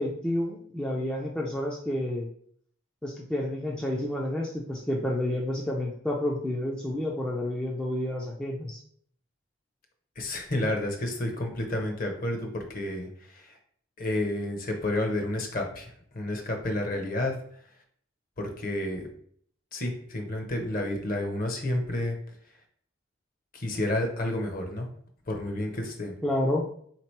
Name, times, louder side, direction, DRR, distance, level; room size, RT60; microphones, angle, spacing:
voice 1, 0.0-2.3 3.0-8.8 26.2-26.6, left 1 dB, 5° left, -3 dB, 0.4 m, -30 dB
voice 2, 10.2-13.6 14.0-17.4 18.4-19.1 19.7-22.1 23.5-24.9 25.3-26.1, left 1 dB, 45° left, 3 dB, 0.8 m, -30 dB
3.5 x 2.9 x 4.5 m, 0.62 s
head